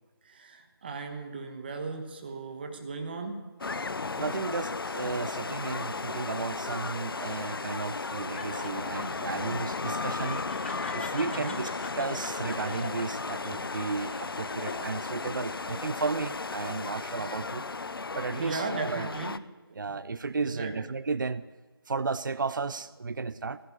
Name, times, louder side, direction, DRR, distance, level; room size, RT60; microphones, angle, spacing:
voice 1, 0.2-3.5 11.2-11.6 18.4-19.4 19.7-19.9 20.3-20.8, right 4 dB, 25° right, 5 dB, 1.2 m, -37 dB
sound 1, 3.6-19.4, left 4 dB, 60° left, 0.6 m, -35 dB
voice 2, 4.2-10.4 10.9-17.6 18.1-19.1 19.7-21.4 21.9-23.6, right 4 dB, 50° right, 15 dB, 0.5 m, -33 dB
Laughter, 6.8-15.3 15.7-16.4, left 4 dB, 30° left, 1.0 m, -45 dB
15.5 x 8.8 x 8.5 m, 1.2 s
figure-of-eight pair, 165°, 13 cm